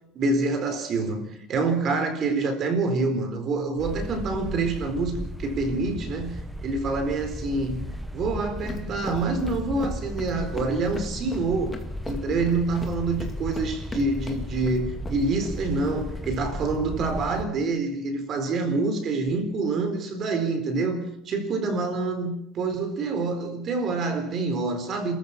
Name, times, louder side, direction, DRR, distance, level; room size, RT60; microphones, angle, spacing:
voice 1, 0.1-11.8 12.1-25.1, right 3 dB, 40° right, 4.0 m, -27 dB
sound 1, 3.8-17.5, equal, ahead, 1.4 m, -35 dB
sound 2, 8.4-17.4, left 3 dB, 15° left, 2.4 m, -42 dB
29.0 x 14.0 x 7.4 m
cardioid pair, 155°, 0 cm